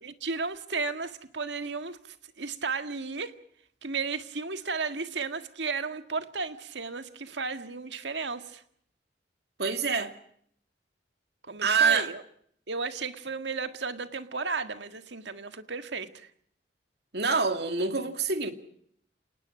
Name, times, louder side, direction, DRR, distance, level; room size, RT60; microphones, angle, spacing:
voice 1, 0.0-3.3 3.8-8.6 11.4-12.2 12.7-16.3, right 4 dB, 85° right, 1.8 m, -34 dB
voice 2, 9.6-10.1 11.6-12.1 17.1-18.5, right 5 dB, 65° right, 2.3 m, -26 dB
29.0 x 18.5 x 6.3 m
head